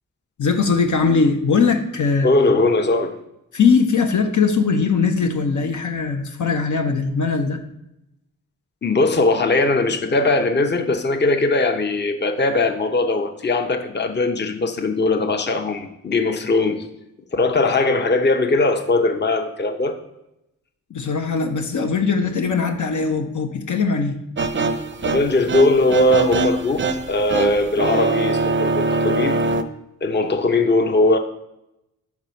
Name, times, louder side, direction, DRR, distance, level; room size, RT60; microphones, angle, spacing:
voice 1, 0.4-2.3 3.5-7.6 20.9-24.2, left 5 dB, 60° left, 4 dB, 0.8 m, -20 dB
voice 2, 2.2-3.1 8.8-16.8 17.3-20.0 25.0-29.4 30.0-31.2, left 2 dB, 30° left, 5 dB, 0.8 m, -19 dB
sound 1, 24.4-29.6, right 3 dB, 35° right, 0.6 m, -23 dB
4.8 x 4.1 x 5.6 m, 0.87 s
supercardioid pair, 40°, 35 cm